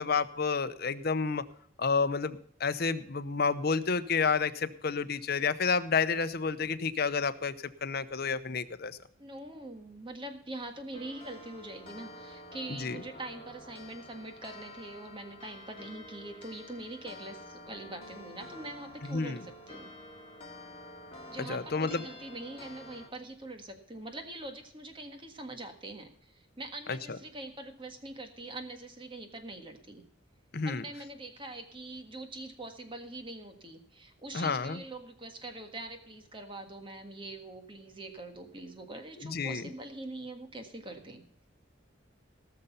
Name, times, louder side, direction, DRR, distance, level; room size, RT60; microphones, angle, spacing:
voice 1, 0.0-1.4 1.8-7.5 7.8-9.0 12.7-13.0 19.1-19.4 21.4-22.0 26.9-27.0 30.5-30.8 34.3-34.8 39.2-39.6, left 5 dB, 50° left, 12 dB, 0.8 m, -30 dB
voice 2, 9.2-19.9 21.3-30.0 30.6-41.2, right 2 dB, 25° right, 6 dB, 1.6 m, -43 dB
sound 1, 10.9-23.1, left 1 dB, 30° left, 2.1 m, -49 dB
18.0 x 6.7 x 5.7 m, 0.64 s
head